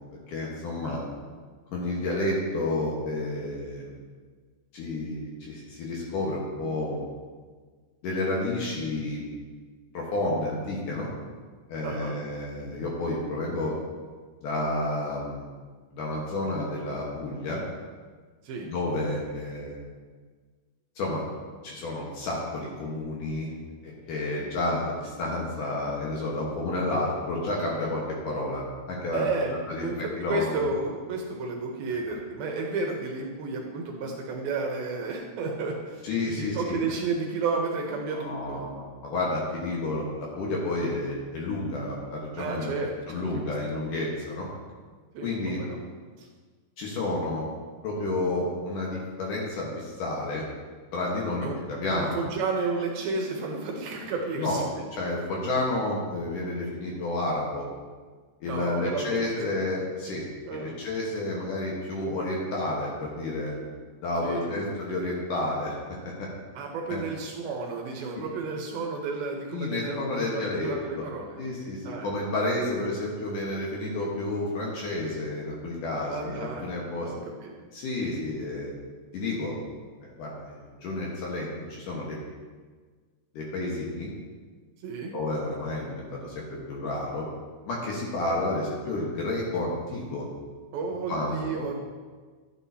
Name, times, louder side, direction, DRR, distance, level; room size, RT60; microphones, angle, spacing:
voice 1, 0.3-1.0 1.7-3.9 4.7-7.0 8.0-9.2 9.9-11.1 11.7-13.7 14.4-15.5 15.9-17.6 18.6-19.8 21.0-21.2 21.6-23.5 23.8-29.3 29.7-29.9 30.2-30.6 36.0-36.8 38.1-44.5 45.2-45.6 46.8-47.5 47.8-50.4 50.9-52.1 54.4-54.6 54.9-57.7 58.4-60.2 60.5-63.6 64.0-65.8 66.0-66.3 66.9-67.0 69.5-71.1 71.4-77.1 77.7-78.7 79.1-79.6 80.0-82.2 83.3-84.1 85.1-87.3 87.6-90.3 91.1-91.7, left 2 dB, 60° left, -3 dB, 2.5 m, -30 dB
voice 2, 11.8-12.1 18.4-18.7 24.4-24.5 29.1-36.1 36.4-38.7 42.4-43.5 45.1-45.8 46.2-46.3 51.4-51.6 51.9-54.6 58.4-59.6 60.5-60.8 64.2-64.6 66.6-71.5 71.8-72.1 76.1-76.8 77.0-77.5 84.8-85.1 90.7-91.7, right 3 dB, 75° right, 1 dB, 2.5 m, -32 dB
12.0 x 9.0 x 2.8 m, 1.5 s
omnidirectional pair, 4.8 m